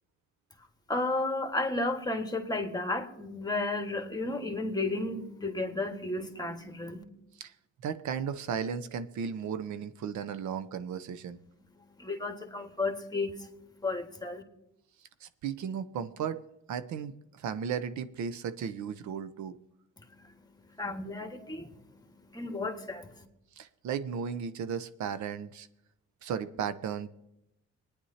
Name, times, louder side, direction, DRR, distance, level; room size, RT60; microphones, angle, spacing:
voice 1, 0.9-7.0 12.0-14.4 20.0-23.3, left 2 dB, 15° left, 1.6 m, -33 dB
voice 2, 7.8-11.4 15.2-16.4 16.7-19.6 23.6-25.7 26.2-27.1, right 7 dB, 70° right, 0.7 m, -35 dB
21.5 x 9.9 x 2.8 m
cardioid pair, 90°, 30 cm